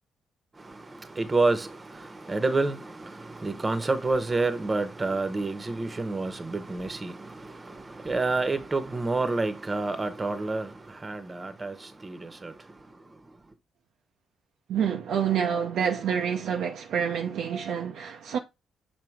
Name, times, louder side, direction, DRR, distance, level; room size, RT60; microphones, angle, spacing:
voice 1, 0.5-13.5, right 3 dB, 25° right, 1.1 m, -29 dB
voice 2, 14.7-18.4, right 8 dB, 60° right, 0.6 m, -27 dB
7.1 x 3.0 x 4.6 m
figure-of-eight pair, 45°, 0 cm